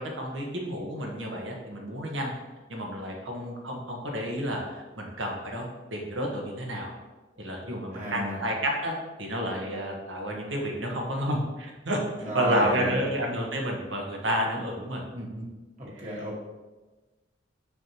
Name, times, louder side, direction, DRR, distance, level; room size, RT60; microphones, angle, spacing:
voice 1, 0.0-2.3 2.7-6.9 7.4-8.9 9.2-12.0 12.3-15.5 15.9-16.2, equal, 75° right, 0 dB, 1.4 m, -31 dB
voice 2, 7.9-8.4 12.2-13.1 15.8-16.4, equal, 40° right, -4 dB, 1.7 m, -31 dB
6.4 x 5.5 x 3.0 m, 1.2 s
head